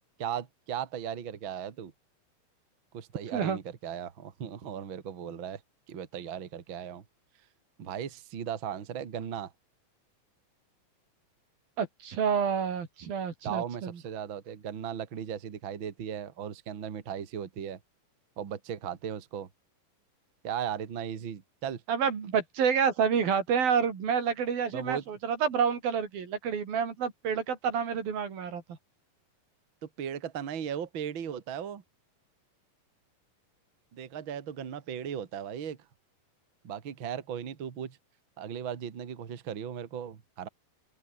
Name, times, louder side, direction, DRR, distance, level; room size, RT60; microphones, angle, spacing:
voice 1, 0.0-1.9 2.9-5.6 5.9-7.0 7.8-9.5 13.4-17.8 18.4-19.5 20.4-21.8 24.7-25.0 29.8-31.8 33.9-35.8 36.6-38.0 38.4-40.5, right 8 dB, 40° right, 2.3 m, -37 dB
voice 2, 11.8-14.0 21.9-28.6, right 7 dB, 85° right, 5.5 m, -28 dB
open air
omnidirectional pair, 4.1 m